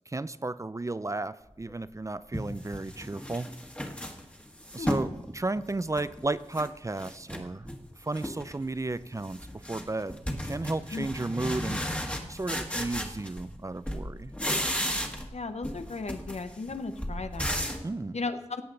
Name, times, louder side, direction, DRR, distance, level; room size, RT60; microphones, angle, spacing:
voice 1, 0.1-3.5 4.7-7.7 8.0-11.8 12.3-14.3 17.8-18.2, right 2 dB, 25° right, 15 dB, 0.4 m, -33 dB
sound 1, 1.7-1.8 2.3-5.1 5.6-6.7 7.0-7.8 8.1-8.6 8.9-13.6 13.9-15.4 15.6-17.9, equal, 10° left, 1.6 m, -34 dB
voice 2, 15.3-17.7 18.1-18.6, left 3 dB, 75° left, 9 dB, 0.9 m, -35 dB
18.0 x 7.7 x 3.9 m, 1.0 s
wide cardioid pair, 65°, 11 cm